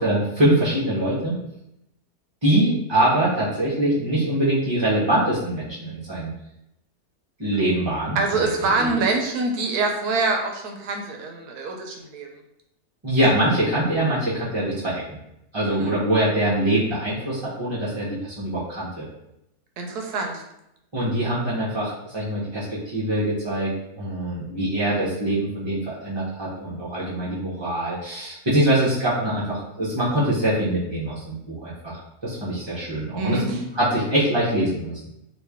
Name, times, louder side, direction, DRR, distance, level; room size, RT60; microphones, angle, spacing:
voice 1, 0.0-1.4 2.4-6.3 7.4-8.5 8.8-8.9 13.0-15.0 15.5-19.1 20.9-23.7 24.0-34.9, right 1 dB, 35° right, -8 dB, 0.4 m, -23 dB
voice 2, 8.2-12.3 15.6-15.9 19.8-20.4 33.1-33.6, right 3 dB, 80° right, 3 dB, 1.1 m, -25 dB
3.1 x 2.5 x 3.4 m, 0.83 s
omnidirectional pair, 1.6 m